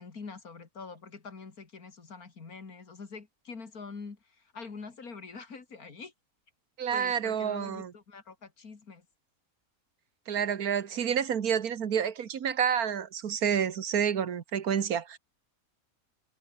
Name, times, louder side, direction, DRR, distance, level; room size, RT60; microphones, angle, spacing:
voice 1, 0.0-6.1 6.9-9.0, left 4 dB, 85° left, 3.0 m, -45 dB
voice 2, 6.8-7.9 10.3-15.2, right 8 dB, 90° right, 1.8 m, -29 dB
omnidirectional pair, 1.5 m